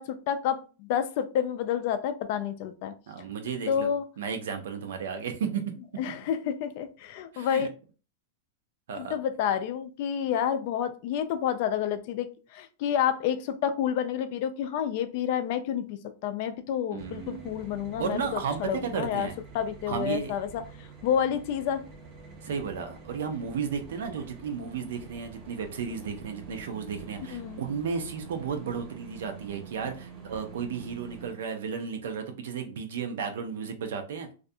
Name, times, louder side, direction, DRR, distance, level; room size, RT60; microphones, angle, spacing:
voice 1, 0.0-2.9 3.7-4.0 6.0-7.7 9.0-19.3 19.5-21.8 27.3-27.7, left 9 dB, 40° left, 0.3 m, -29 dB
voice 2, 3.1-3.9 4.2-6.0 7.3-7.7 8.9-9.1 16.9-17.6 18.0-19.4 19.9-20.3 22.4-34.3, right 6 dB, 70° right, 0.6 m, -34 dB
sound 1, 17.0-31.3, right 6 dB, 25° right, 0.5 m, -47 dB
2.4 x 2.2 x 2.6 m
supercardioid pair, 175°, 0 cm